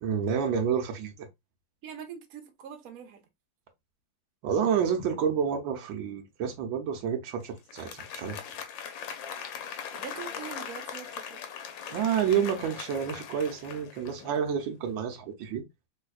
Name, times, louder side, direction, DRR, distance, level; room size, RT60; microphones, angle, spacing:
voice 1, 0.0-1.1 4.4-8.4 11.9-15.6, right 7 dB, 85° right, 1.5 m, -29 dB
voice 2, 1.8-3.2 9.9-11.4, right 7 dB, 60° right, 1.1 m, -43 dB
Applause, 7.6-14.6, left 8 dB, 80° left, 1.4 m, -40 dB
3.5 x 3.2 x 2.3 m
omnidirectional pair, 2.1 m